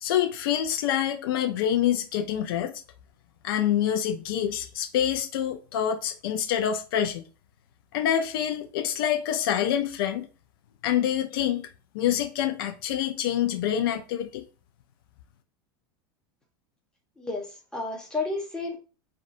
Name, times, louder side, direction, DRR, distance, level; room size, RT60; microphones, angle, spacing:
voice 1, 0.0-2.7 3.4-7.2 7.9-10.3 10.8-11.7 11.9-14.4, left 10 dB, 65° left, 0.4 m, -26 dB
voice 2, 17.2-18.8, left 3 dB, 5° left, 0.8 m, -32 dB
2.5 x 2.2 x 2.4 m
hypercardioid pair, 100°, 13 cm